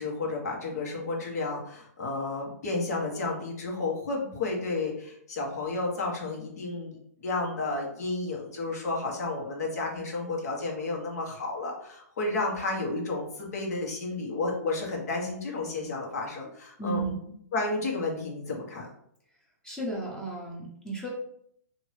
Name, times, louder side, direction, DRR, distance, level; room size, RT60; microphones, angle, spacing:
voice 1, 0.0-17.1 17.5-18.9, left 3 dB, 65° left, -1 dB, 1.3 m, -32 dB
voice 2, 16.8-17.3 19.6-21.1, right 3 dB, 10° left, -3 dB, 0.9 m, -34 dB
2.9 x 2.7 x 3.3 m, 0.69 s
hypercardioid pair, 145°, 9 cm